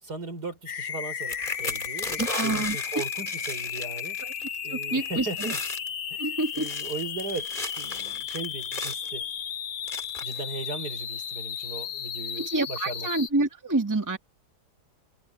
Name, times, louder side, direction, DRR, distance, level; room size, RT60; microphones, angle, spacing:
voice 1, 0.0-4.2 4.6-5.6 6.1-6.3 6.5-7.5 7.8-9.3 10.2-13.1, right 3 dB, 70° right, 5.0 m, -37 dB
sound 1, 0.7-13.3, left 8 dB, 70° left, 0.5 m, -34 dB
sound 2, 1.2-4.6 4.8-5.1 5.3-5.9 6.4-9.1 9.9-10.4 11.1-11.2 11.6-11.8, left 3 dB, 30° left, 2.4 m, -35 dB
voice 2, 2.2-2.8 4.2-4.3 4.7-5.5 6.2-6.7 12.4-14.2, right 2 dB, 10° right, 1.8 m, -28 dB
omnidirectional pair, 1.8 m